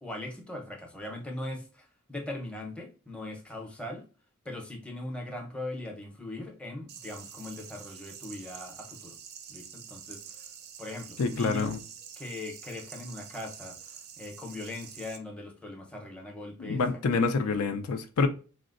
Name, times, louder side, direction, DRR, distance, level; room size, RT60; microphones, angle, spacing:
voice 1, 0.0-4.0 4.4-9.2 9.5-10.2 10.8-11.7 12.2-16.8 17.1-17.5, left 1 dB, 5° left, 0.6 m, -40 dB
sound 1, 6.9-15.2, right 8 dB, 50° right, 0.4 m, -47 dB
voice 2, 11.2-11.8 16.6-18.3, left 4 dB, 85° left, 0.4 m, -27 dB
4.2 x 2.0 x 2.4 m
head